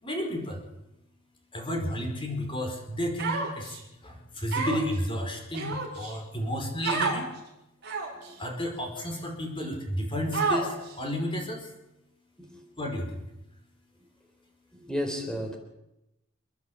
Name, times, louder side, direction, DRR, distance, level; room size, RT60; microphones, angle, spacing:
voice 1, 0.0-0.7 1.5-7.2 8.4-11.7 12.8-13.2, equal, 25° left, 2 dB, 4.7 m, -32 dB
Human voice, 3.2-3.8 4.5-5.0 5.5-6.1 6.8-7.2 7.8-8.3 9.0-9.1 10.3-10.9, right 4 dB, 50° right, 5.6 m, -29 dB
voice 2, 14.7-15.6, equal, 5° left, 3 dB, 4.1 m, -33 dB
29.0 x 10.5 x 8.5 m, 0.90 s
head